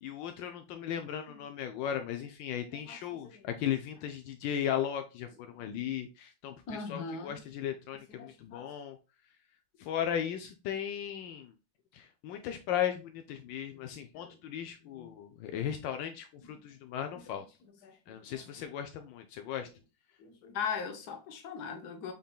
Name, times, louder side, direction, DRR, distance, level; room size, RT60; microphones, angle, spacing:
voice 1, 0.0-9.0 9.8-11.5 11.9-17.4 18.1-19.7, left 9 dB, 85° left, 1.3 m, -36 dB
voice 2, 2.7-3.5 5.5-5.7 6.7-7.4 8.2-8.7 13.7-13.9 14.1-14.4 14.8-15.1 16.4-16.5 17.1-17.2 17.6-18.4 20.2-22.1, left 6 dB, 65° left, 1.4 m, -41 dB
5.4 x 3.7 x 2.3 m
omnidirectional pair, 2.0 m